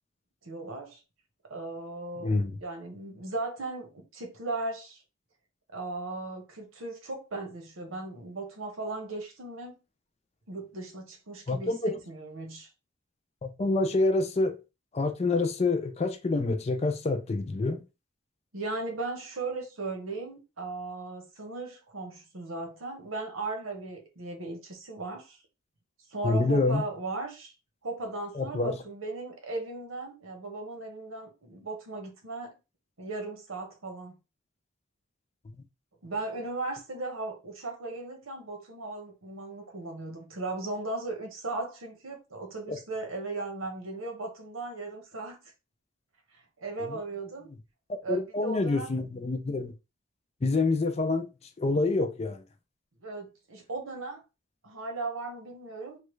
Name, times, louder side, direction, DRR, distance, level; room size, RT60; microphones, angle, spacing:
voice 1, 0.4-1.0 1.5-2.3 2.6-5.0 5.7-9.8 10.5-12.7 18.5-25.4 26.1-27.5 27.8-32.5 33.0-34.1 36.0-45.4 46.6-47.5 48.0-48.9 53.0-54.2 54.6-56.0, right 3 dB, 85° right, 1.0 m, -37 dB
voice 2, 2.2-2.6 11.5-12.0 13.4-14.6 14.9-17.8 26.2-26.8 28.3-28.8 35.5-35.6 42.7-42.8 46.8-47.0 47.9-49.7 50.4-51.3 51.6-52.4, left 3 dB, 30° left, 0.4 m, -27 dB
3.1 x 2.3 x 3.1 m
head